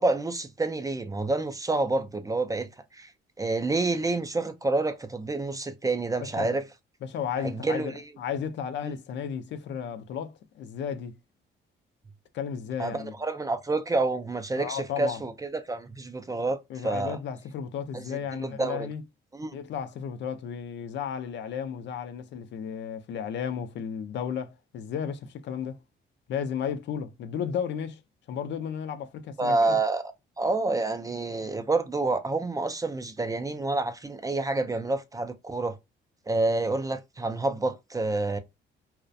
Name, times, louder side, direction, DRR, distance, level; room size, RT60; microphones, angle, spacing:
voice 1, 0.0-3.1 3.4-6.6 7.4-7.9 8.8-8.9 12.8-17.2 17.9-18.0 18.3-18.9 19.3-19.6 29.4-30.0 30.4-35.8 36.3-38.4, right 2 dB, 20° right, 0.3 m, -28 dB
voice 2, 6.2-6.6 7.0-11.1 12.3-13.1 14.6-15.2 16.7-19.0 19.5-25.8 26.3-28.0 28.3-29.8, left 7 dB, 65° left, 0.4 m, -34 dB
2.3 x 2.1 x 2.5 m
cardioid pair, 90°, 20 cm